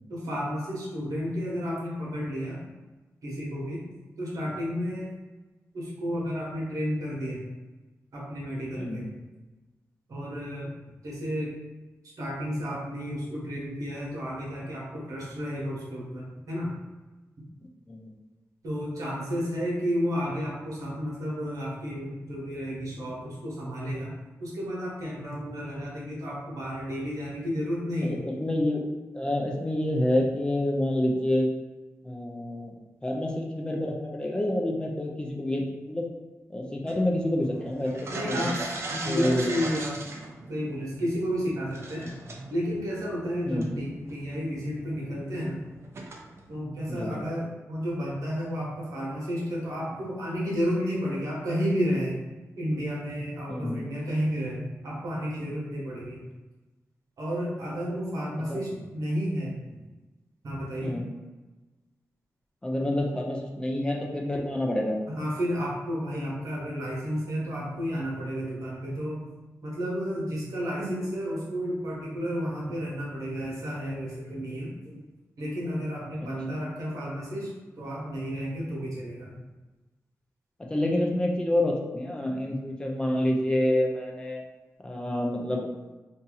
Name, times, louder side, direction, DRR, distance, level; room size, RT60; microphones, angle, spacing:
voice 1, 0.1-2.6 3.2-3.8 4.2-5.1 5.7-7.4 8.1-9.1 10.1-10.7 11.0-11.5 12.2-16.7 18.6-24.1 24.4-28.2 38.1-38.6 38.9-40.0 40.5-42.1 42.5-45.6 46.5-52.2 52.6-56.2 57.2-59.5 60.4-61.0 65.1-69.3 69.6-75.0 75.4-77.5 77.8-79.3, equal, 80° right, -5 dB, 1.2 m, -32 dB
voice 2, 28.0-31.5 32.0-32.7 33.0-36.1 36.5-38.5 39.1-39.5 43.5-43.7 46.9-47.2 53.5-53.9 58.5-58.6 60.8-61.1 62.6-64.9 80.6-84.4 84.8-85.6, left 1 dB, 15° left, -1 dB, 0.4 m, -28 dB
sound 1, 36.9-46.6, right 2 dB, 50° right, 0.5 m, -39 dB
2.7 x 2.7 x 3.8 m, 1.2 s
wide cardioid pair, 160°, 6 cm